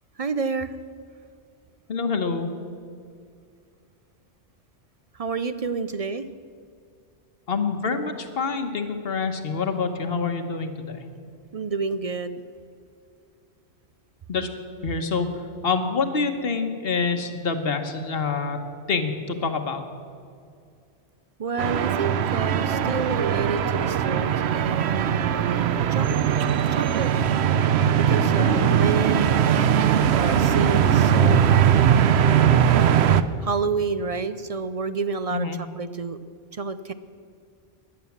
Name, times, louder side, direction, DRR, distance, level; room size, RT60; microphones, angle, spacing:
voice 1, 0.2-0.8 5.2-6.3 11.5-12.4 21.4-25.4 25.9-26.1 26.7-27.1 28.0-29.3 30.1-31.8 33.4-36.2 36.5-36.9, right 4 dB, 45° right, 12 dB, 0.5 m, -29 dB
voice 2, 1.9-2.5 7.5-11.0 14.3-14.5 14.8-15.3 15.6-18.6 18.9-19.8 28.4-28.7 35.3-35.6, left 4 dB, 60° left, 6 dB, 1.5 m, -26 dB
sound 1, 21.6-33.2, right 8 dB, 70° right, 0.9 m, -20 dB
17.0 x 11.0 x 7.3 m, 2.3 s
omnidirectional pair, 1.1 m